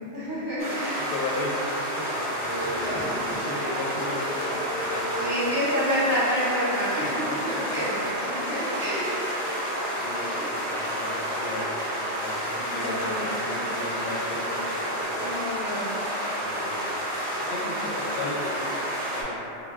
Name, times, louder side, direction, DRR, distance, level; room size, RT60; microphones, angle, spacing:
voice 1, 0.0-1.1 2.8-3.3 5.2-9.1 10.1-10.5 12.6-13.3 15.2-16.3 17.5-17.8, equal, 45° right, -10 dB, 0.8 m, -29 dB
sound 1, 0.6-19.2, equal, 10° right, 0.5 m, -30 dB
voice 2, 1.0-1.6 1.9-5.6 7.3-7.4 10.0-15.3 16.4-16.8 17.5-19.4, left 2 dB, 80° left, -4 dB, 0.9 m, -36 dB
sound 2, 2.4-3.0 3.3-15.0, equal, 60° left, 0.6 m, -40 dB
3.8 x 2.2 x 2.3 m, 2.9 s
omnidirectional pair, 1.2 m